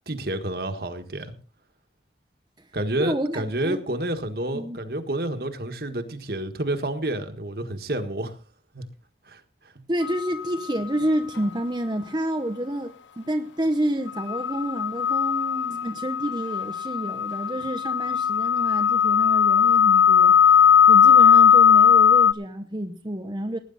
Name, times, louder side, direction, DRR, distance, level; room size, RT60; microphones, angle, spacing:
voice 1, 0.1-1.3 2.7-8.3 8.7-8.8 9.3-9.4 9.7-9.8, right 1 dB, 55° right, 1.7 m, -29 dB
voice 2, 3.0-3.8 4.5-4.8 9.9-23.6, right 1 dB, 25° right, 0.9 m, -29 dB
sound 1, 10.0-10.4 14.1-22.3, left 8 dB, 90° left, 0.7 m, -18 dB
18.5 x 9.9 x 4.1 m
head